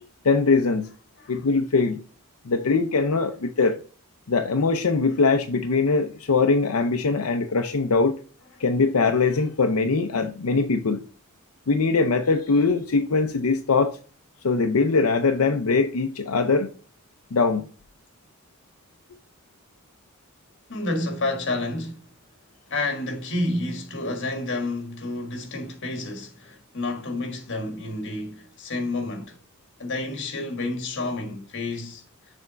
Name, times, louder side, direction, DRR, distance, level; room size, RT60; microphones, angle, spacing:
voice 1, 0.2-0.9 1.3-2.0 2.4-3.8 4.3-8.2 8.6-11.0 11.7-14.0 14.4-16.7 17.3-17.7, left 4 dB, 90° left, 0.6 m, -22 dB
voice 2, 20.7-22.0 22.7-29.4 29.8-32.0, left 2 dB, 55° left, 1.4 m, -30 dB
6.8 x 3.6 x 3.9 m
head